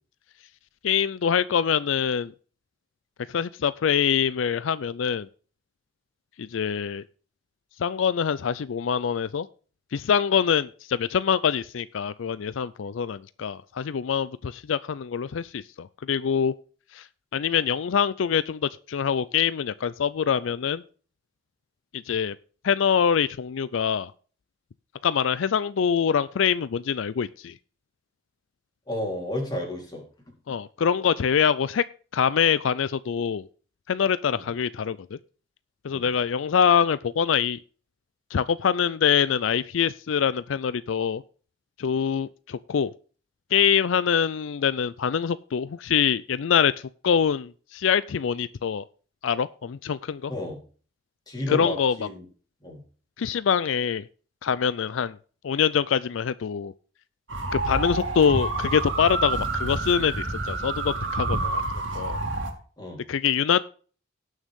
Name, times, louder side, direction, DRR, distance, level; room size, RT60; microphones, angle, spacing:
voice 1, 0.8-2.3 3.3-5.3 6.4-7.0 7.8-9.5 9.9-16.5 16.9-17.1 17.3-20.8 21.9-22.4 22.6-24.1 25.0-27.6 30.5-31.8 32.1-33.5 33.9-35.2 35.8-37.6 38.3-41.2 41.8-42.9 43.5-46.7 47.0-48.8 49.2-50.3 51.5-51.9 53.2-54.1 54.4-55.2 55.4-56.7 57.5-61.6 61.9-62.2 63.1-63.6, left 7 dB, 80° left, 16 dB, 0.4 m, -24 dB
voice 2, 28.9-30.0 34.3-34.5 35.9-36.1 50.3-50.6 51.3-52.2 52.6-52.8 62.8-63.0, left 1 dB, 20° left, -1 dB, 3.7 m, -32 dB
sound 1, 57.3-62.5, right 3 dB, 70° right, 2.6 m, -28 dB
18.0 x 6.4 x 3.6 m, 0.40 s
head